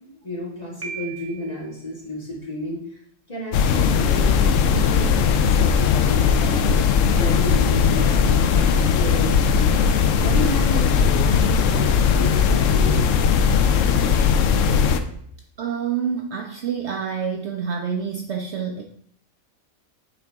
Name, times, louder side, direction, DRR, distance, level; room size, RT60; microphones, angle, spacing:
voice 1, 0.0-3.0 3.3-5.1 5.5-6.8 7.1-9.9 10.2-13.1, equal, 25° left, -6 dB, 2.2 m, -32 dB
Piano, 0.8-1.8, right 6 dB, 15° right, 0.6 m, -37 dB
sound 1, 3.5-15.0, left 6 dB, 70° left, 0.9 m, -18 dB
voice 2, 15.6-18.8, right 7 dB, 65° right, 2 dB, 0.8 m, -27 dB
8.4 x 3.7 x 3.5 m, 0.66 s
omnidirectional pair, 1.5 m